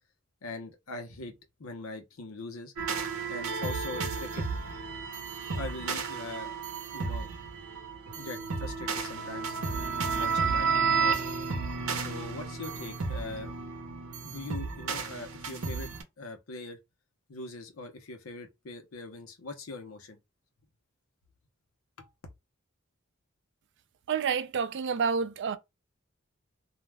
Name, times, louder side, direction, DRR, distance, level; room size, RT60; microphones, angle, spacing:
voice 1, 0.4-2.7 3.3-4.4 5.5-6.6 6.9-7.3 8.2-9.5 10.1-11.2 11.9-13.5 14.2-15.9 16.2-16.8 17.3-20.2 22.0-22.1, left 3 dB, 85° left, 0.7 m, -41 dB
sound 1, 2.8-16.0, right 5 dB, 90° right, 0.7 m, -32 dB
voice 2, 24.1-25.6, right 6 dB, 60° right, 0.4 m, -29 dB
2.3 x 2.1 x 3.2 m
head